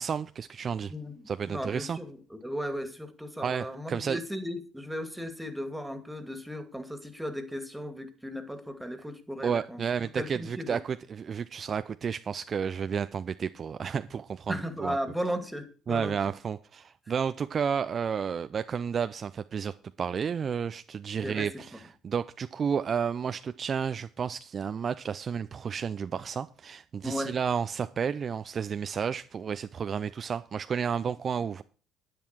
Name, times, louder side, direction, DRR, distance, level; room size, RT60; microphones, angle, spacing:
voice 1, 0.0-0.9 1.3-2.0 3.4-4.2 9.4-15.0 15.9-21.8 22.0-31.6, right 7 dB, 40° right, 0.5 m, -31 dB
voice 2, 1.4-9.8 10.1-10.8 14.5-16.2 21.2-21.5 27.0-27.3, equal, 5° right, 2.4 m, -36 dB
10.5 x 10.0 x 4.6 m
hypercardioid pair, 55°, 0 cm